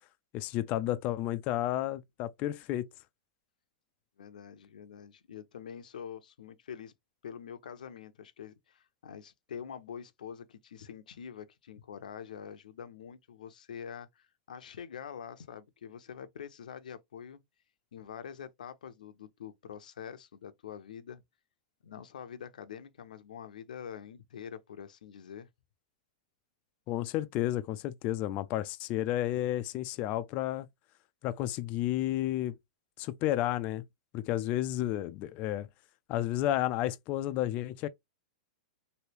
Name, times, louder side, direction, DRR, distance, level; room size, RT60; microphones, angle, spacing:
voice 1, 0.3-2.9 26.9-30.7 31.2-32.5 33.0-33.8 34.1-35.7 36.1-37.9, left 14 dB, 35° left, 0.3 m, -31 dB
voice 2, 4.2-6.9 7.2-17.4 17.9-21.2 21.8-25.5, left 8 dB, 90° left, 0.6 m, -45 dB
3.1 x 2.7 x 2.9 m
hypercardioid pair, 140°, 4 cm